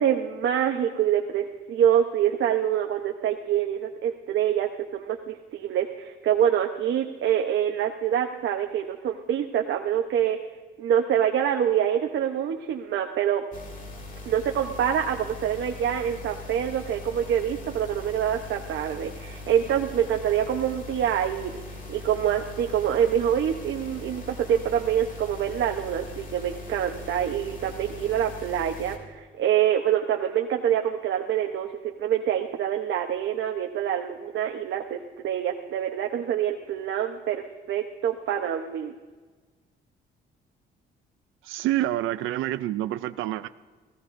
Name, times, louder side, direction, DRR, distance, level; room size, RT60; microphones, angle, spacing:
voice 1, 0.0-10.4 10.8-13.4 14.2-21.5 21.9-38.9, right 9 dB, 70° right, 2 dB, 1.0 m, -26 dB
sound 1, 13.5-29.0, left 2 dB, 40° left, 2.4 m, -41 dB
voice 2, 41.4-43.5, right 14 dB, 90° right, 12 dB, 0.5 m, -27 dB
28.0 x 16.5 x 2.6 m, 1.4 s
cardioid pair, 90°, 20 cm